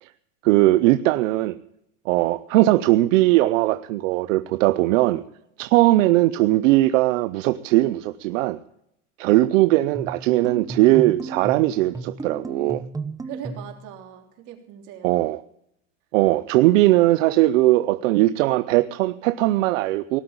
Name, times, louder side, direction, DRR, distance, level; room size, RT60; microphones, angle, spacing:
voice 1, 0.4-1.6 2.1-5.2 5.6-8.6 9.2-12.8 15.0-15.4 16.1-20.2, right 17 dB, 80° right, 0.7 m, -19 dB
sound 1, 9.9-13.8, right 3 dB, 10° right, 0.9 m, -34 dB
voice 2, 13.2-15.3, right 9 dB, 50° right, 3.5 m, -40 dB
18.5 x 7.9 x 8.8 m
supercardioid pair, 140°, 38 cm